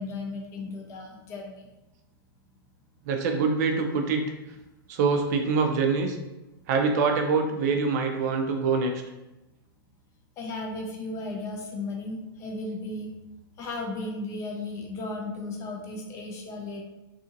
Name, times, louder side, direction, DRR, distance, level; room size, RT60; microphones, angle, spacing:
voice 1, 0.0-1.7 10.4-13.1 13.6-16.8, left 2 dB, 25° left, 1 dB, 0.4 m, -35 dB
voice 2, 3.0-4.2 4.9-6.2 6.7-8.9, right 4 dB, 45° right, 4 dB, 0.4 m, -24 dB
2.7 x 2.6 x 2.5 m, 1.0 s
hypercardioid pair, 145°, 12 cm